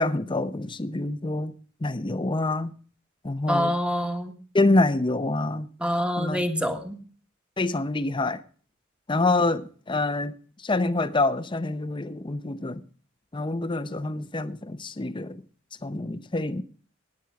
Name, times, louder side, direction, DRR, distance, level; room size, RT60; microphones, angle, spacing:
voice 1, 0.0-1.5 1.8-2.7 3.2-3.7 4.5-5.7 6.2-6.5 7.6-8.4 9.1-10.3 10.6-12.8 13.3-15.4 15.8-16.6, left 2 dB, 25° left, 0.7 m, -26 dB
voice 2, 3.5-4.3 5.8-7.0, equal, 5° right, 1.4 m, -26 dB
18.0 x 9.0 x 4.7 m
head